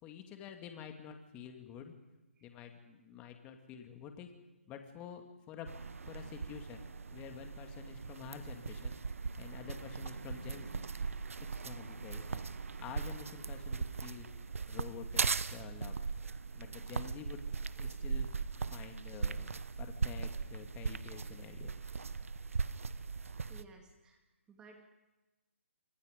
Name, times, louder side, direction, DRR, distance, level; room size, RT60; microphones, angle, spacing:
voice 1, 0.0-1.9 2.4-4.3 4.7-5.7 6.0-9.0 9.4-10.9 11.6-12.4 12.8-14.3 14.7-16.0 16.5-17.4 17.8-18.4 18.7-21.7, left 8 dB, 15° left, 5 dB, 2.1 m, -49 dB
voice 2, 2.4-2.7 23.5-24.2 24.5-24.8, right 4 dB, 10° right, 3 dB, 2.2 m, -57 dB
sound 1, 5.7-23.6, right 5 dB, 75° right, 1.1 m, -39 dB
28.0 x 25.0 x 5.2 m, 1.1 s
hypercardioid pair, 160°, 7 cm